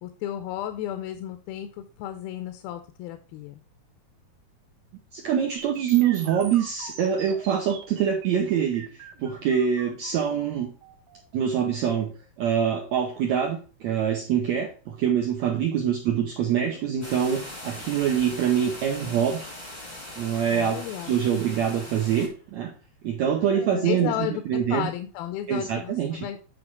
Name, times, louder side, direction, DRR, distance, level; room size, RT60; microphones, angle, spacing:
voice 1, 0.0-3.6 20.5-21.2 23.7-26.4, left 12 dB, 90° left, 8 dB, 2.4 m, -33 dB
voice 2, 5.1-10.7 11.3-12.1 12.4-19.5 20.2-22.7 23.0-24.9 25.5-26.2, right 8 dB, 80° right, 3 dB, 1.6 m, -25 dB
sound 1, 5.6-13.5, right 6 dB, 60° right, 2.0 m, -45 dB
sound 2, 16.3-17.0 17.7-18.1 18.7-19.3 20.5-20.6 21.8-22.4 22.7-22.8 23.3-24.3, equal, 10° right, 0.7 m, -44 dB
sound 3, 17.0-22.3, left 1 dB, 25° left, 1.0 m, -40 dB
8.8 x 3.9 x 4.7 m, 0.36 s
omnidirectional pair, 4.3 m